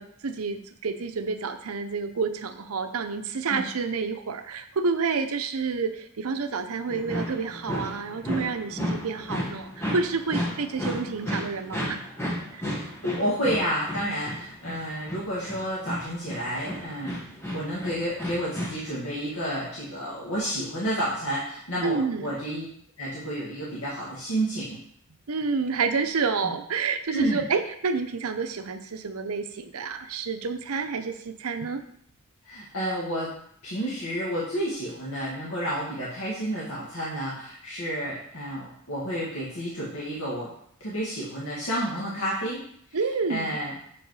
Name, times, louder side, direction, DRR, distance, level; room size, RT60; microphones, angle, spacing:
voice 1, 0.0-12.0 12.5-12.6 21.8-22.3 25.3-31.8 42.9-43.6, right 4 dB, 80° right, 9 dB, 0.6 m, -29 dB
sound 1, 6.9-18.7, equal, 10° left, 1.5 m, -33 dB
voice 2, 12.7-17.2 17.5-22.7 23.0-24.8 26.4-26.5 27.1-27.5 32.5-33.3 33.6-40.5 40.8-42.6 42.9-43.0 43.3-43.8, right 1 dB, 75° left, -7 dB, 2.0 m, -30 dB
6.8 x 5.1 x 4.7 m, 0.65 s
head